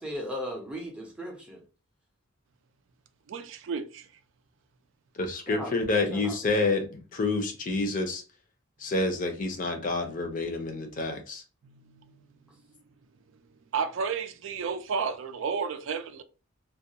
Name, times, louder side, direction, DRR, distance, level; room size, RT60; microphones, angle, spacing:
voice 1, 0.0-1.6 5.5-5.7 6.1-6.3, equal, 5° right, 0.5 m, -36 dB
voice 2, 3.3-4.1 11.6-12.1 13.7-16.2, right 5 dB, 65° right, 0.3 m, -32 dB
voice 3, 5.2-8.2 8.8-11.4, left 3 dB, 40° left, 0.5 m, -28 dB
2.3 x 2.2 x 2.8 m
head